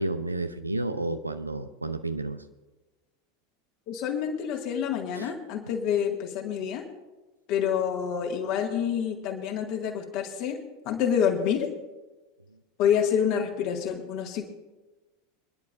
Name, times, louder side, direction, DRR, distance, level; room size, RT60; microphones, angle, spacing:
voice 1, 0.0-2.4 5.1-5.3, right 2 dB, 85° right, 9 dB, 0.7 m, -31 dB
voice 2, 3.9-6.9 7.5-11.7 12.8-14.5, left 8 dB, 45° left, 2 dB, 2.1 m, -27 dB
26.0 x 10.5 x 2.7 m, 1.1 s
figure-of-eight pair, 80°, 0 cm